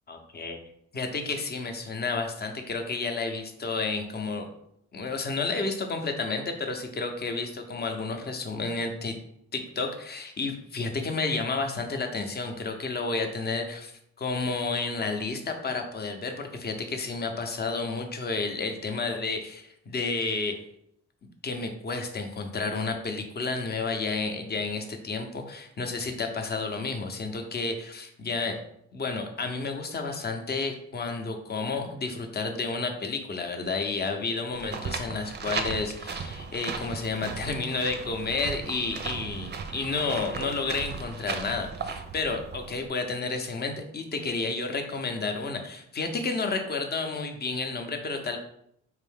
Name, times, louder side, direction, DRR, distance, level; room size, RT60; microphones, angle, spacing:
voice 1, 0.1-0.6 0.9-4.5 4.9-9.1 9.5-13.9 14.2-20.6 21.4-28.6 28.9-48.4, left 3 dB, 35° left, 5 dB, 0.7 m, -31 dB
sound 1, 34.5-42.9, right 5 dB, 35° right, 0.5 m, -36 dB
4.6 x 2.5 x 3.5 m, 0.73 s
cardioid pair, 90°, 30 cm